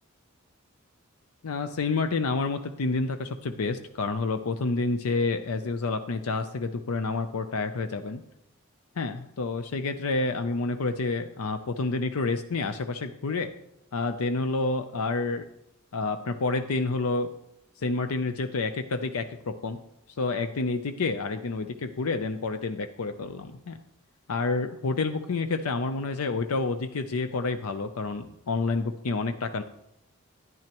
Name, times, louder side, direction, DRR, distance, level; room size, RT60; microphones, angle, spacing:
voice 1, 1.4-8.2 9.0-13.5 13.9-15.5 15.9-17.3 17.8-19.8 20.2-23.8 24.3-29.6, left 3 dB, 85° left, 9 dB, 0.5 m, -29 dB
11.0 x 10.5 x 3.0 m, 0.80 s
head